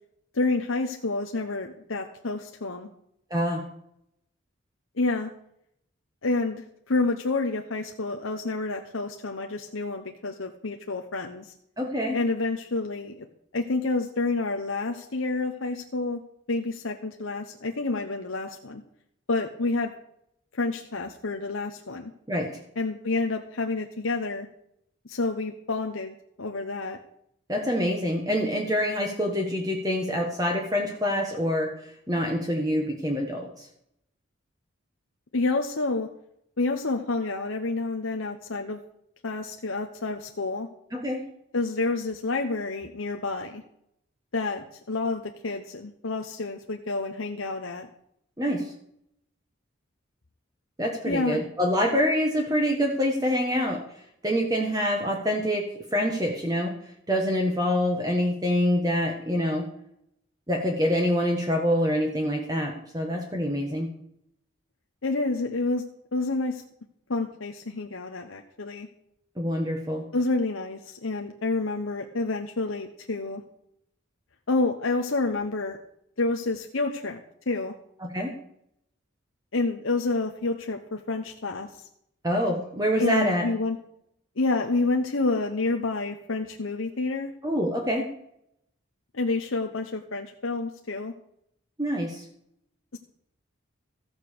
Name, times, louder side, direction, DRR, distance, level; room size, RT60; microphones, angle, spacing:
voice 1, 0.3-2.9 5.0-5.3 6.2-11.5 12.1-13.2 13.5-16.2 16.5-18.8 19.3-19.9 20.5-22.1 22.8-24.5 25.0-27.0 35.3-36.1 36.6-38.8 39.2-40.7 41.5-43.6 44.3-47.9 51.0-51.4 65.0-65.8 66.1-66.6 67.1-68.9 70.1-73.4 74.5-75.8 76.2-77.2 77.5-77.7 79.5-81.9 83.0-83.8 84.4-87.3 89.1-91.1 92.9-93.0, left 3 dB, 85° left, 3 dB, 1.1 m, -29 dB
voice 2, 3.3-3.7 11.8-12.2 22.3-22.5 27.5-31.7 32.1-33.7 40.9-41.2 48.4-48.7 50.8-53.8 54.2-56.7 57.1-59.7 60.5-63.9 69.4-70.0 78.0-78.4 82.2-83.5 87.4-88.1 91.8-92.2, equal, 20° right, 2 dB, 1.5 m, -26 dB
14.5 x 8.2 x 6.7 m, 0.72 s
head